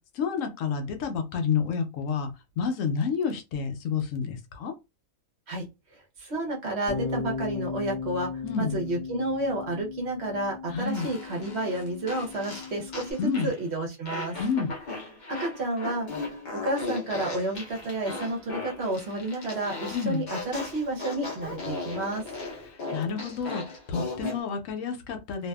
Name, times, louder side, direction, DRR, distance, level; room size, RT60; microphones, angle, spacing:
voice 1, 0.1-2.3 2.6-4.7 8.4-8.8 10.7-11.1 13.2-13.5 14.4-14.7 19.9-20.3 22.7-23.6 23.9-25.5, left 6 dB, 75° left, 0.9 m, -29 dB
voice 2, 5.9-8.3 8.6-14.3 15.3-22.2, right 2 dB, 55° right, 1.0 m, -31 dB
Bass guitar, 6.9-13.1, left 4 dB, 10° right, 1.1 m, -36 dB
Fart, 10.9-13.6 14.1-24.4, left 3 dB, 45° left, 0.6 m, -37 dB
2.6 x 2.5 x 2.2 m
omnidirectional pair, 1.4 m